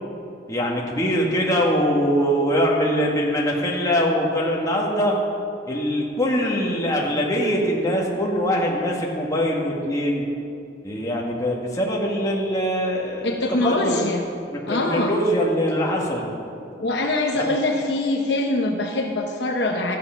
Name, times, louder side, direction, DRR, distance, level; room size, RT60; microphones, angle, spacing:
voice 1, 0.5-5.2 5.7-10.2 10.8-13.3 13.6-14.1 14.5-16.3 17.3-17.5, equal, 20° left, -3 dB, 1.8 m, -22 dB
voice 2, 13.2-14.2 14.7-15.1 16.8-20.0, left 2 dB, 65° left, 2 dB, 0.9 m, -23 dB
13.5 x 8.5 x 5.8 m, 2.6 s
head